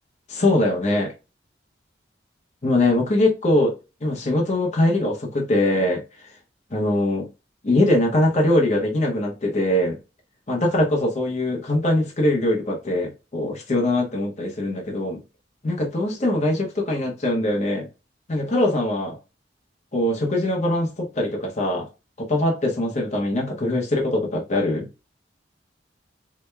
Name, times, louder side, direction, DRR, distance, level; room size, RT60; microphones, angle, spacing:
voice 1, 0.3-1.1 2.6-3.7 4.0-6.0 6.7-7.3 7.6-10.0 10.5-15.2 15.6-17.9 18.3-19.2 19.9-21.9 22.2-24.9, left 1 dB, 40° left, 0.8 m, -22 dB
4.7 x 2.2 x 2.2 m
head